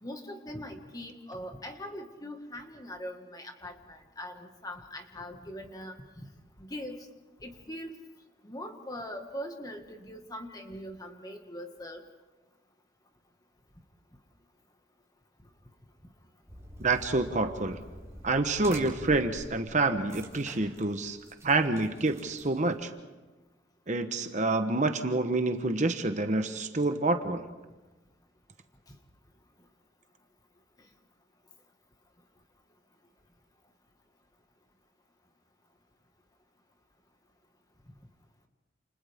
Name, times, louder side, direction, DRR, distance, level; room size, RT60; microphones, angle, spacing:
voice 1, 0.0-6.3 6.6-7.1 7.4-8.0 8.4-12.0, equal, 20° left, 4 dB, 1.8 m, -41 dB
sound 1, 16.5-22.8, right 1 dB, 15° right, 4.8 m, -47 dB
voice 2, 16.8-17.8 18.2-21.2 21.4-22.9 23.9-27.5, right 2 dB, 40° right, 7 dB, 1.1 m, -27 dB
29.5 x 29.0 x 3.6 m, 1.2 s
head